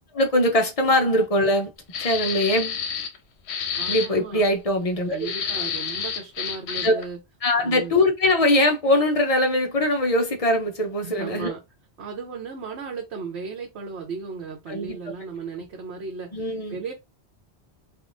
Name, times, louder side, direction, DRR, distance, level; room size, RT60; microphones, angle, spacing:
voice 1, 0.1-1.7 2.0-2.8 3.9-5.3 6.8-7.0 7.4-11.5 14.7-15.0 16.3-16.8, left 1 dB, 40° left, 0.6 m, -22 dB
sound 1, 1.9-3.2 3.5-4.1 5.2-7.1, left 7 dB, 85° left, 0.9 m, -29 dB
voice 2, 3.7-4.4 5.1-7.2 7.5-7.9 11.0-11.6 12.0-16.9, right 5 dB, 85° right, 1.1 m, -35 dB
3.6 x 2.5 x 2.5 m
omnidirectional pair, 1.1 m